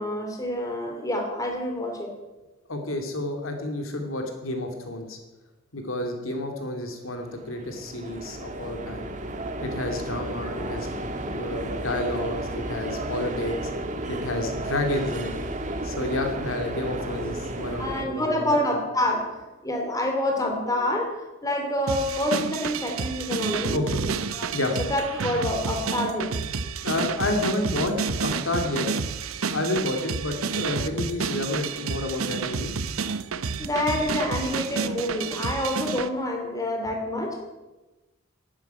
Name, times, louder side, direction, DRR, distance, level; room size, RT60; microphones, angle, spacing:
voice 1, 0.0-2.1 17.8-21.2 21.4-23.8 24.3-24.6 24.9-26.4 33.6-37.4, left 1 dB, 15° left, 2 dB, 2.8 m, -27 dB
voice 2, 2.7-5.2 5.7-9.1 9.6-10.9 11.3-13.6 14.1-15.3 15.8-18.5 23.7-24.1 24.5-24.7 26.8-28.8 29.5-32.7, left 1 dB, 75° left, 4 dB, 2.6 m, -30 dB
sound 1, 7.2-18.0, right 1 dB, 35° right, 1.5 m, -33 dB
sound 2, 21.9-36.1, right 5 dB, 85° right, 0.8 m, -30 dB
12.0 x 10.5 x 9.5 m, 1.1 s
head